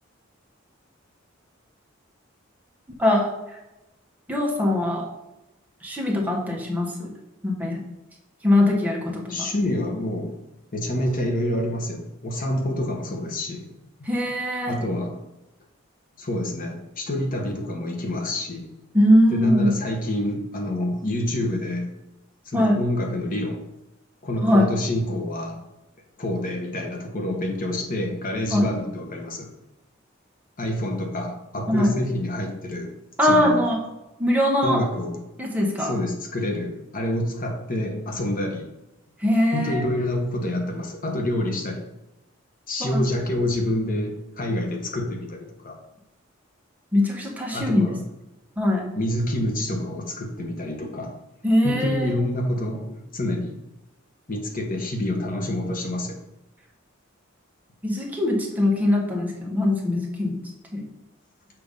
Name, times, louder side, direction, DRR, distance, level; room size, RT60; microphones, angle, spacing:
voice 1, 3.0-3.6 4.3-5.0 5.8-7.1 7.4-7.8 8.4-9.5 14.0-14.8 18.9-19.8 22.5-22.8 24.4-24.7 28.5-28.7 31.7-31.9 33.2-33.8 34.2-34.8 35.4-35.9 39.2-39.8 42.8-43.0 46.9-47.9 48.6-48.8 51.4-52.1 57.8-60.4 60.7-60.8, left 1 dB, 10° right, -2 dB, 1.3 m, -21 dB
voice 2, 9.3-10.4 10.7-13.7 14.7-15.2 16.2-18.7 19.3-21.9 22.4-23.6 24.2-25.6 26.2-29.5 30.6-32.9 33.2-33.6 34.6-35.2 35.8-38.6 39.5-41.8 42.7-45.8 47.5-48.0 49.0-51.2 51.6-53.6 54.3-56.2, left 1 dB, 45° left, 3 dB, 1.1 m, -27 dB
6.9 x 2.9 x 5.2 m, 0.97 s
head